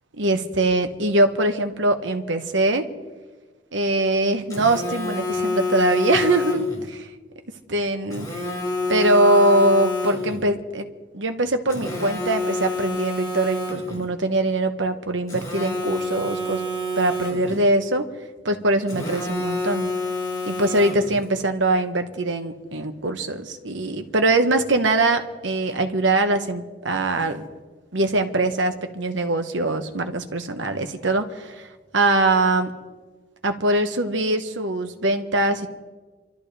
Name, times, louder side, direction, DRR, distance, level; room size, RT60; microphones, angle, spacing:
voice 1, 0.2-2.9 3.7-7.1 7.7-8.5 8.9-10.9 11.1-16.6 17.0-18.0 18.4-19.9 20.5-27.4 27.9-31.7 31.9-32.7 33.4-35.7, right 2 dB, 85° right, 7 dB, 1.3 m, -22 dB
Telephone, 4.5-6.8 8.1-10.5 11.7-14.1 15.3-17.7 18.9-21.3, left 2 dB, 20° left, 3.3 m, -28 dB
28.0 x 13.0 x 3.4 m, 1.3 s
head